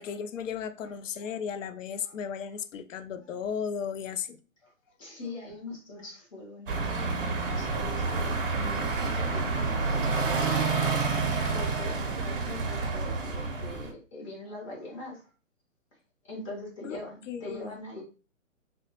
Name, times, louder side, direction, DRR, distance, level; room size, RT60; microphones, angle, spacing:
voice 1, 0.0-4.4 16.8-17.0 17.3-17.8, left 7 dB, 70° left, 0.5 m, -35 dB
voice 2, 5.0-15.3 16.2-18.0, left 2 dB, 25° left, 1.0 m, -42 dB
sound 1, 6.7-13.9, right 4 dB, 40° right, 0.6 m, -29 dB
3.3 x 2.1 x 2.8 m
hypercardioid pair, 160°, 40 cm